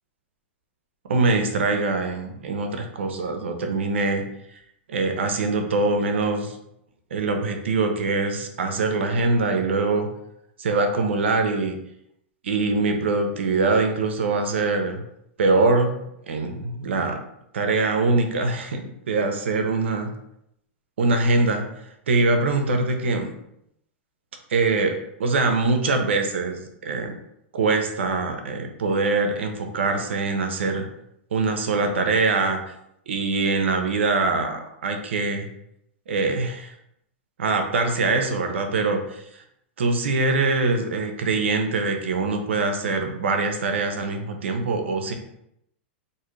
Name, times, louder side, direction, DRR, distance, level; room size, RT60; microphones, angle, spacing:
voice 1, 1.1-4.2 4.9-6.6 7.1-10.1 10.6-11.8 12.4-15.0 15.4-15.9 16.3-17.2 17.5-18.8 19.1-20.1 21.0-21.7 22.1-23.3 24.5-27.2 27.5-30.9 31.3-32.6 33.1-35.5 36.1-36.7 37.4-39.4 39.8-45.1, right 3 dB, 90° right, 5 dB, 0.5 m, -23 dB
2.6 x 2.4 x 3.0 m, 0.78 s
hypercardioid pair, 125°, 6 cm